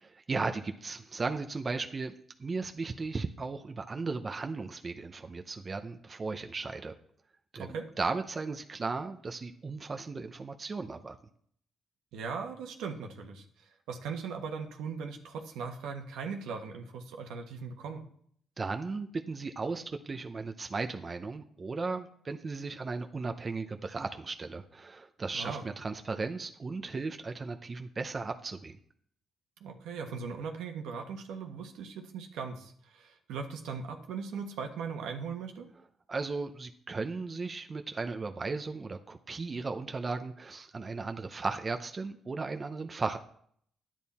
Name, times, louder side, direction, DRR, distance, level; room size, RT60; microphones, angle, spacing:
voice 1, 0.3-2.1 2.4-6.9 7.5-11.2 18.6-28.8 36.1-43.2, right 4 dB, 30° right, 6 dB, 0.8 m, -36 dB
voice 2, 7.5-7.9 12.1-18.1 25.3-25.6 29.6-35.7, right 5 dB, 85° right, 3 dB, 1.4 m, -39 dB
10.5 x 9.0 x 4.3 m, 0.62 s
cardioid pair, 90°, 0 cm